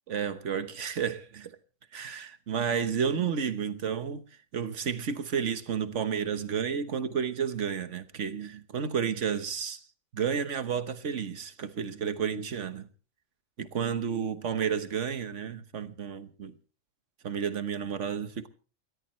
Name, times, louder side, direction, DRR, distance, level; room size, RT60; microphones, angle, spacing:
voice 1, 0.1-1.6 1.9-9.8 10.1-12.9 13.6-16.5 17.2-18.5, right 7 dB, 70° right, 1.5 m, -31 dB
29.0 x 13.5 x 3.1 m
omnidirectional pair, 1.3 m